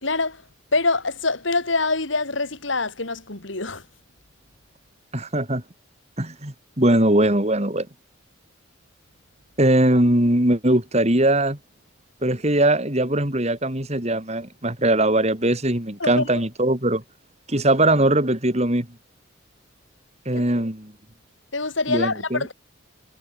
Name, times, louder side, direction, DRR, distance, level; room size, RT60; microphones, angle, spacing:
voice 1, 0.0-0.4 0.7-3.8 16.0-16.3 21.5-22.5, left 3 dB, 65° left, 3.2 m, -24 dB
voice 2, 5.1-5.6 6.2-7.9 9.6-11.6 12.2-17.0 17.5-18.9 20.2-20.9 21.9-22.4, right 1 dB, 30° right, 3.2 m, -20 dB
head